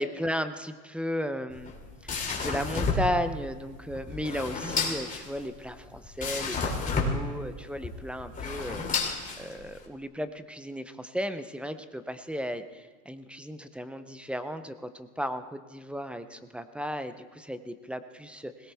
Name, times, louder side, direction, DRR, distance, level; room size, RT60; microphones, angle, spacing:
voice 1, 0.0-1.7 2.0-9.1 9.4-18.7, equal, 5° right, 11 dB, 0.5 m, -35 dB
sound 1, 1.5-9.8, left 4 dB, 15° left, 2.8 m, -32 dB
20.5 x 18.0 x 3.4 m, 1.4 s
supercardioid pair, 120°, 44 cm